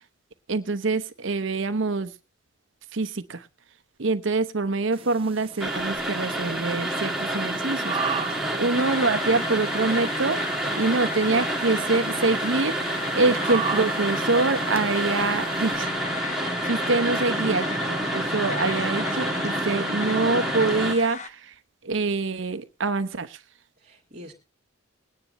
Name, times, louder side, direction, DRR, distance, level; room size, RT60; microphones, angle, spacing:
voice 1, 0.5-2.1 2.9-3.5 4.0-7.9 8.6-10.4 10.8-15.9 16.4-21.5 21.8-23.4, right 3 dB, 65° right, 12 dB, 0.9 m, -25 dB
sound 1, 4.9-15.8, right 6 dB, 25° right, 0.6 m, -38 dB
sound 2, 5.6-20.9, right 1 dB, ahead, 1.7 m, -28 dB
voice 2, 8.3-8.7 23.8-24.3, equal, 40° right, -3 dB, 2.0 m, -44 dB
sound 3, 8.8-21.3, left 5 dB, 35° left, 0.8 m, -36 dB
21.0 x 9.6 x 3.0 m, 0.27 s
head